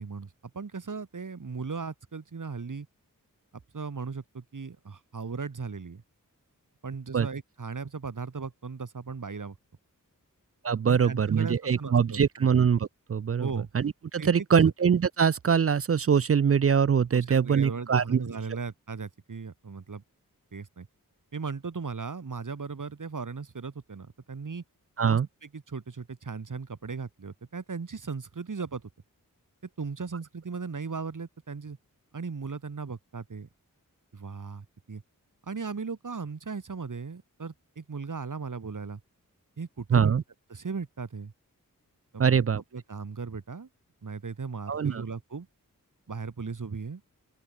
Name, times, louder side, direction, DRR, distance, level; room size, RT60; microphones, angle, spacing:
voice 1, 0.0-2.9 3.7-6.0 6.8-9.6 10.9-12.5 13.4-13.7 14.2-14.7 17.1-20.0 20.5-20.9 21.3-24.6 25.1-28.8 29.8-31.8 32.1-33.5 34.1-35.0 35.4-39.0 39.6-40.2 40.5-41.3 42.1-42.5 42.7-43.7 44.0-45.5 46.1-47.0, right 5 dB, 60° right, 2.9 m, -37 dB
voice 2, 10.6-13.5 13.7-18.2 25.0-25.3 39.9-40.2 42.2-42.6 44.7-45.0, right 7 dB, 45° right, 0.5 m, -23 dB
open air
wide cardioid pair, 65°, 34 cm